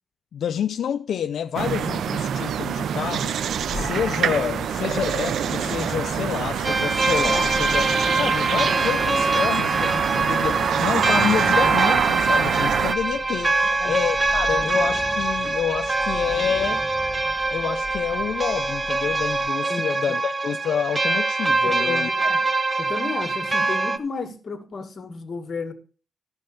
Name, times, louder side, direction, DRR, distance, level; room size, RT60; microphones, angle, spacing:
voice 1, 0.3-16.8 17.5-22.1, left 9 dB, 85° left, 0.5 m, -28 dB
sound 1, 1.5-12.9, right 8 dB, 90° right, 0.4 m, -25 dB
sound 2, 3.5-19.5, left 3 dB, 15° left, 1.6 m, -38 dB
sound 3, 6.6-24.0, right 3 dB, 30° right, 0.9 m, -24 dB
voice 2, 21.6-22.4 22.8-25.7, left 4 dB, 55° left, 1.9 m, -33 dB
13.5 x 5.4 x 5.7 m
cardioid pair, 90°, 0 cm